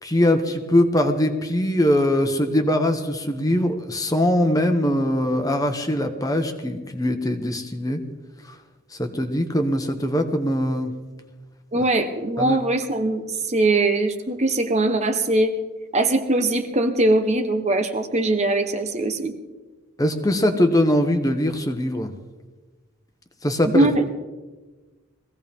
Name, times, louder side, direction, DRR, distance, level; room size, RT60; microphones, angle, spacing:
voice 1, 0.0-8.0 9.0-10.9 11.7-11.8 12.4-12.6 20.0-22.1 23.4-23.9, left 1 dB, 15° left, 6 dB, 1.1 m, -21 dB
voice 2, 11.7-15.5 15.9-19.3 23.7-24.1, right 2 dB, 30° right, 6 dB, 0.9 m, -21 dB
22.0 x 16.0 x 3.6 m, 1.2 s
head